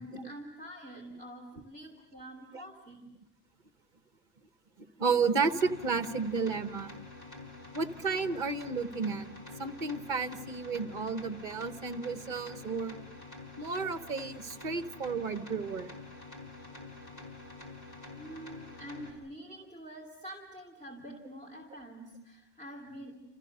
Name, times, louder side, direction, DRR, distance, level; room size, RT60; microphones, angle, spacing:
voice 1, 0.0-3.0 18.2-23.2, right 1 dB, 5° left, -1 dB, 2.9 m, -46 dB
voice 2, 4.8-6.9 7.7-9.3 9.6-13.0 13.6-15.9, right 4 dB, 45° right, 10 dB, 1.4 m, -32 dB
sound 1, 5.4-19.1, left 3 dB, 35° left, 5.1 m, -47 dB
29.5 x 29.0 x 6.7 m, 0.90 s
omnidirectional pair, 1.2 m